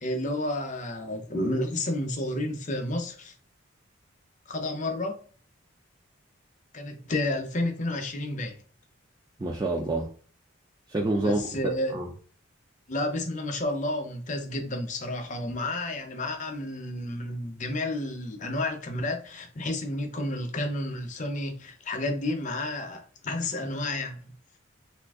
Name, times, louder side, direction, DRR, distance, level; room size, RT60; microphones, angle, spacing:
voice 1, 0.0-3.3 4.5-5.2 6.7-8.6 11.2-12.0 12.9-24.3, left 1 dB, 35° left, 0.6 m, -31 dB
voice 2, 9.4-10.1 10.9-12.1, right 2 dB, 20° right, 0.3 m, -28 dB
2.7 x 2.5 x 3.5 m
head